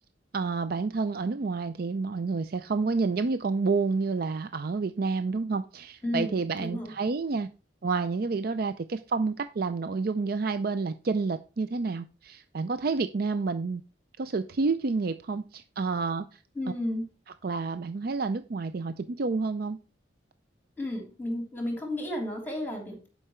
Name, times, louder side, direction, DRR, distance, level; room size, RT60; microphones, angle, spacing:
voice 1, 0.3-7.5 7.8-13.8 14.2-16.4 17.4-19.8, right 4 dB, 50° right, 11 dB, 0.4 m, -29 dB
voice 2, 6.0-6.9 16.5-17.1 20.8-23.1, left 1 dB, 10° left, 1 dB, 3.1 m, -33 dB
11.0 x 5.6 x 4.4 m, 0.33 s
head